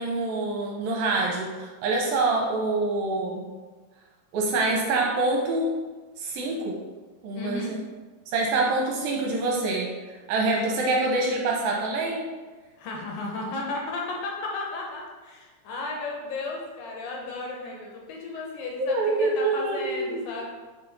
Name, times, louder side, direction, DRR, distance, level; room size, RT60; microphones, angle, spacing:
voice 1, 0.0-3.5 4.3-5.7 6.2-6.7 7.2-7.8 8.3-9.9 10.3-12.3 18.8-20.4, right 2 dB, 75° right, -1 dB, 2.4 m, -26 dB
voice 2, 7.3-7.7 12.8-20.5, left 2 dB, 75° left, -1 dB, 2.4 m, -34 dB
6.9 x 4.0 x 4.1 m, 1.3 s
omnidirectional pair, 4.5 m